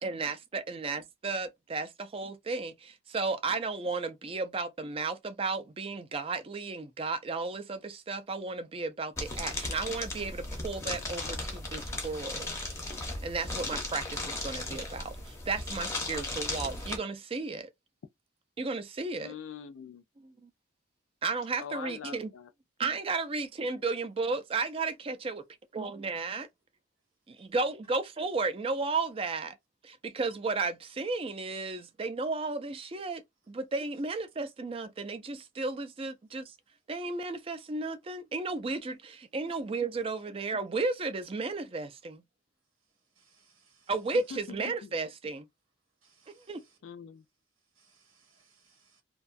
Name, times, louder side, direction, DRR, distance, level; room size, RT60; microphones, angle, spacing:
voice 1, 0.0-12.5 13.0-17.7 18.6-19.3 20.2-20.5 21.2-22.3 22.8-25.4 25.7-26.5 27.3-29.6 29.8-33.2 33.5-36.5 36.9-42.2 43.9-45.5 46.3-46.6, right 3 dB, 25° right, 0.3 m, -34 dB
sound 1, 9.2-17.0, left 2 dB, 15° left, 0.6 m, -36 dB
voice 2, 19.2-20.0 21.6-22.5 44.1-44.9 46.8-47.2, left 7 dB, 70° left, 0.4 m, -43 dB
voice 3, 43.2-43.9 46.0-46.8 47.8-49.0, right 5 dB, 85° right, 1.1 m, -66 dB
2.6 x 2.2 x 2.4 m
head